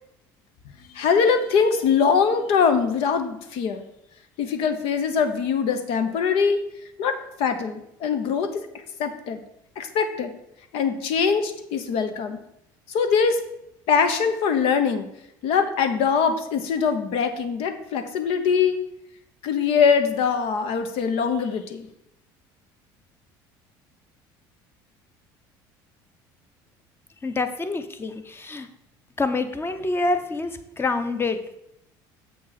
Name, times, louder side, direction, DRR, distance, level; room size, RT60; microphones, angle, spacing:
voice 1, 0.9-3.8 4.4-6.6 7.0-8.7 9.0-9.4 9.8-10.3 10.7-12.4 12.9-13.4 13.9-15.1 15.4-18.8 19.4-21.9, left 6 dB, 70° left, 8 dB, 1.0 m, -22 dB
voice 2, 27.2-28.7 29.2-31.4, left 3 dB, 20° left, 9 dB, 0.9 m, -26 dB
7.3 x 6.0 x 4.1 m, 0.78 s
supercardioid pair, 90°, 10 cm